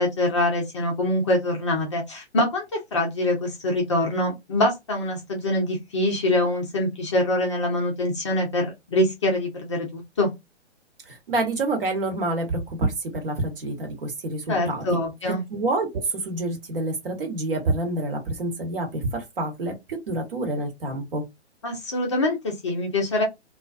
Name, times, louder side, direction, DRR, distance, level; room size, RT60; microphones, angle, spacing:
voice 1, 0.0-2.7 2.9-10.3 14.5-15.4 21.6-23.2, left 1 dB, 25° left, 0.5 m, -24 dB
voice 2, 11.1-15.0 15.3-21.2, right 2 dB, 50° right, 1.1 m, -28 dB
2.4 x 2.2 x 2.4 m
figure-of-eight pair, 130°, 35 cm